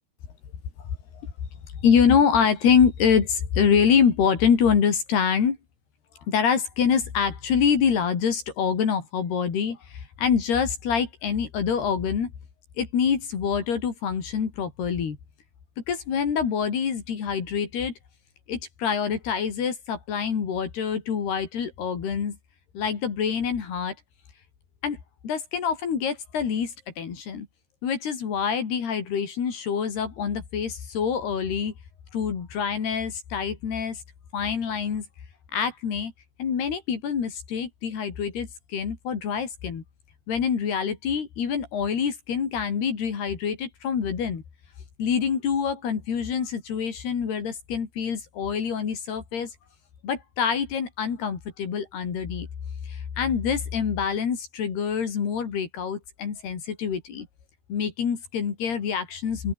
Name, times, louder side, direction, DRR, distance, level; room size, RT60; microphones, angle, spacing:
voice 1, 1.8-5.6 6.3-12.3 12.8-15.2 15.9-17.9 18.5-22.4 22.7-24.0 24.8-27.5 27.8-31.7 32.1-34.0 34.3-35.1 35.5-36.1 36.4-39.8 40.3-44.4 45.0-49.5 50.0-52.5 52.8-57.3 57.7-59.5, left 7 dB, 75° left, 5.8 m, -25 dB
open air
omnidirectional pair, 4.7 m